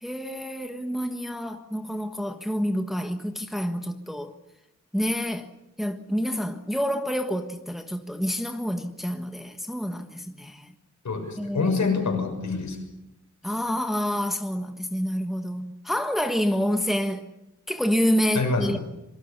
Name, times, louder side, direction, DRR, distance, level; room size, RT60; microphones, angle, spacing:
voice 1, 0.0-4.4 4.9-5.5 5.8-10.7 11.4-11.8 13.4-17.2 17.7-18.8, equal, ahead, 1.4 m, -28 dB
voice 2, 11.0-12.8 18.3-18.8, left 4 dB, 65° left, 6.6 m, -26 dB
26.0 x 23.5 x 7.0 m
wide cardioid pair, 125°, 31 cm